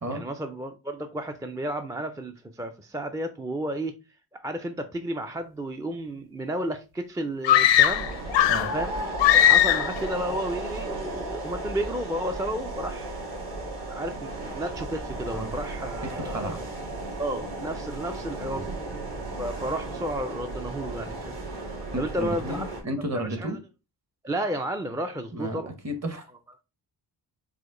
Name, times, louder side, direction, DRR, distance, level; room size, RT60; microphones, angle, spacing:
voice 1, 0.1-3.9 4.4-8.1 8.7-8.9 9.3-13.2 13.9-16.6 17.2-18.7 19.4-21.3 22.0-22.7 23.1-23.5 24.2-25.7, right 1 dB, 10° right, 0.3 m, -32 dB
sound 1, 7.4-8.8 9.2-10.0, left 11 dB, 80° left, 0.6 m, -19 dB
sound 2, 7.8-22.8, right 2 dB, 65° right, 2.1 m, -35 dB
voice 2, 16.0-16.6 18.5-18.7 21.9-23.6 25.3-26.3, right 1 dB, 35° right, 1.1 m, -33 dB
4.9 x 2.1 x 3.7 m
cardioid pair, 90°, 44 cm